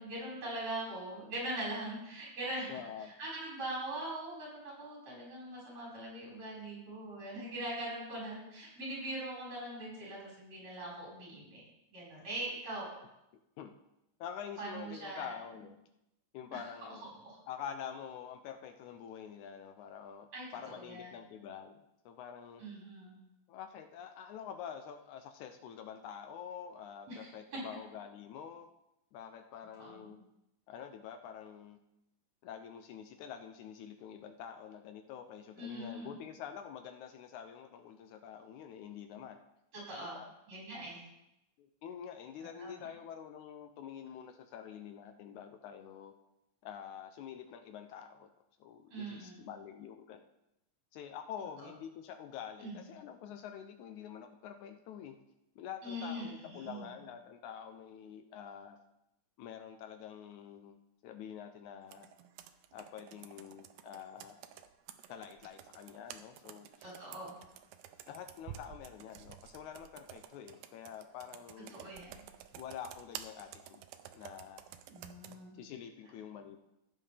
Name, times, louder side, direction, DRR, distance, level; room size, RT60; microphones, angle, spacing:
voice 1, 0.0-11.6 11.9-13.0 14.6-15.3 16.5-16.6 17.2-17.4 20.3-21.2 22.6-23.2 27.1-27.6 29.8-30.1 35.6-36.2 39.7-40.2 40.5-41.1 42.6-42.9 48.9-49.5 51.6-51.7 52.6-52.8 55.8-56.9 66.8-67.3 71.7-72.2 74.9-75.5, right 1 dB, 55° right, -6 dB, 6.3 m, -42 dB
voice 2, 2.7-3.1 13.6-13.7 14.2-15.8 16.3-17.0 17.5-20.3 20.5-21.8 22.1-22.6 23.5-28.7 29.1-30.2 30.7-31.8 32.4-39.4 40.0-40.3 41.6-46.1 46.6-48.3 48.6-50.2 50.9-55.2 55.6-58.8 59.4-60.8 61.0-62.1 62.7-64.4 65.1-66.9 68.1-71.7 72.6-73.8 74.1-74.6 75.6-76.6, left 8 dB, 75° left, 7 dB, 2.0 m, -47 dB
Computer keyboard, 61.9-75.4, right 10 dB, 90° right, 2.3 m, -52 dB
15.5 x 8.6 x 3.4 m, 0.87 s
omnidirectional pair, 3.7 m